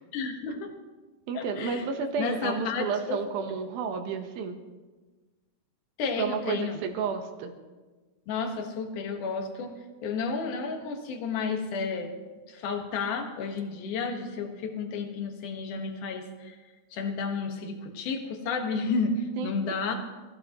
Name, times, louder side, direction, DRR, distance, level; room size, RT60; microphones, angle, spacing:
voice 1, 0.1-0.7 1.3-1.8 2.2-3.2 6.0-6.8 8.3-9.7 10.0-12.1 12.5-16.6 16.9-19.9, left 4 dB, 60° left, 3 dB, 2.4 m, -31 dB
voice 2, 1.3-4.6 6.2-7.5 19.4-19.5, right 6 dB, 70° right, 5 dB, 2.6 m, -31 dB
24.0 x 15.0 x 3.0 m, 1.3 s
omnidirectional pair, 5.1 m